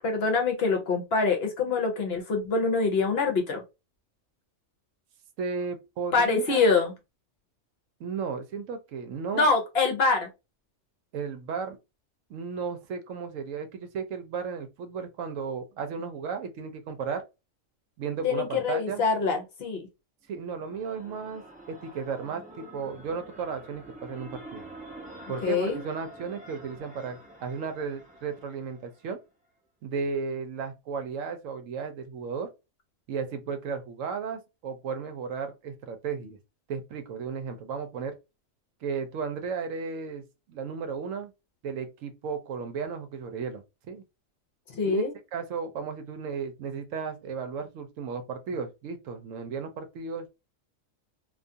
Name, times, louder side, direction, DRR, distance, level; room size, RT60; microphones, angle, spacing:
voice 1, 0.0-3.6 6.1-6.9 9.3-10.3 18.2-19.9 25.4-25.8 44.7-45.1, left 4 dB, 60° left, 0.8 m, -25 dB
voice 2, 5.4-6.6 8.0-9.5 11.1-11.8 12.3-17.2 18.0-19.0 20.3-21.4 21.7-24.6 25.3-29.2 29.8-32.5 33.1-36.4 36.7-38.2 38.8-41.3 41.6-44.0 44.8-45.1 45.3-50.3, right 5 dB, 75° right, 0.9 m, -34 dB
sound 1, 20.3-29.1, right 1 dB, 10° right, 0.4 m, -47 dB
2.4 x 2.3 x 2.6 m
omnidirectional pair, 1.4 m